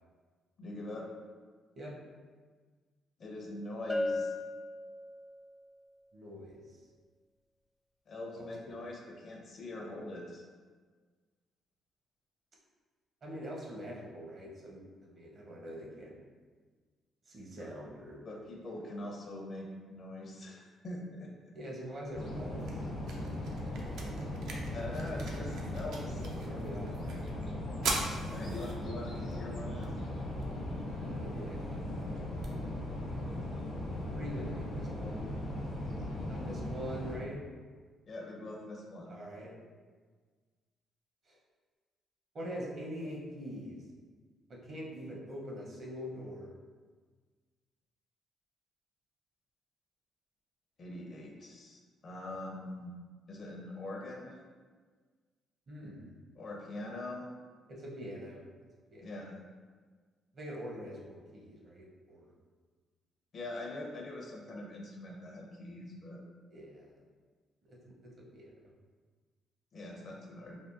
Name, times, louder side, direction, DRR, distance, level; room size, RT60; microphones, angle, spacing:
voice 1, 0.6-1.1 3.2-4.3 8.1-10.5 17.6-17.7 18.2-21.3 24.7-26.2 28.3-29.9 38.1-39.2 50.8-53.0 53.3-54.4 56.4-57.3 59.0-59.4 63.3-66.2 69.7-70.6, left 1 dB, 50° left, 0 dB, 0.5 m, -43 dB
Bell, 3.9-5.5, left 2 dB, 5° left, 0.4 m, -35 dB
voice 2, 6.1-6.6 8.3-8.8 13.2-16.2 17.3-18.2 21.5-22.8 26.0-26.1 26.4-26.9 28.8-29.1 31.0-32.5 34.1-35.3 36.3-37.4 39.1-39.5 41.3-41.4 42.3-43.8 44.5-46.5 55.7-56.2 57.7-58.4 58.9-59.1 60.3-62.3 66.5-66.9 67.6-68.5, equal, 50° right, -3 dB, 0.7 m, -44 dB
sound 1, 22.1-37.2, left 1 dB, 75° left, 1.0 m, -38 dB
sound 2, 22.1-34.1, right 3 dB, 75° right, 0.4 m, -44 dB
3.5 x 2.1 x 2.5 m, 1.5 s
cardioid pair, 90°, 0 cm